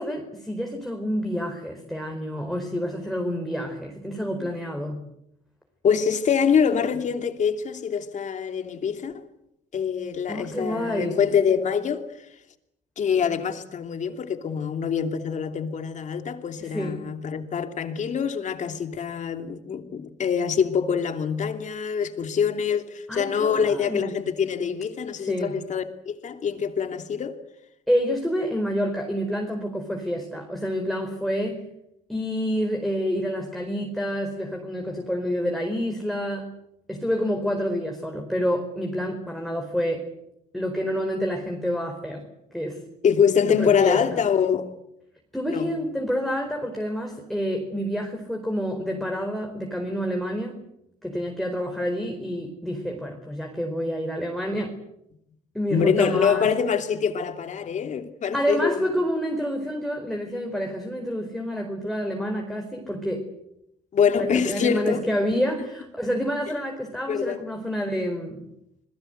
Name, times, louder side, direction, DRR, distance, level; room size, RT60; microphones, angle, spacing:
voice 1, 0.0-5.1 10.3-11.2 16.6-17.1 23.1-24.1 25.2-25.5 27.9-31.7 32.1-36.6 36.9-40.1 40.5-42.3 42.5-42.8 43.6-44.2 45.3-50.6 51.0-54.8 55.5-56.5 58.3-63.3 64.2-68.5, equal, ahead, 4.7 m, -28 dB
voice 2, 5.8-9.2 9.7-12.0 13.0-27.4 43.0-44.6 45.5-45.7 55.7-58.9 63.9-65.0 65.3-65.4 67.1-67.4, left 7 dB, 45° left, 2.9 m, -25 dB
28.0 x 21.5 x 8.1 m
cardioid pair, 110°, 17 cm